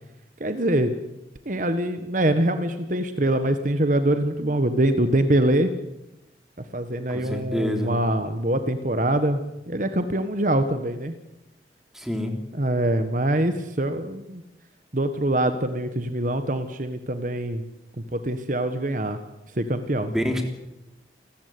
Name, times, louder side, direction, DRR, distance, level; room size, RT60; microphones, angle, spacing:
voice 1, 0.4-0.9 1.4-5.7 6.7-9.4 9.7-11.1 12.5-14.4 14.9-17.6 18.1-19.2 19.5-20.1, right 1 dB, 45° right, 9 dB, 1.4 m, -24 dB
voice 2, 7.1-7.9 11.9-12.4 20.1-20.4, equal, ahead, 4 dB, 3.4 m, -27 dB
29.0 x 15.0 x 9.5 m, 0.92 s
head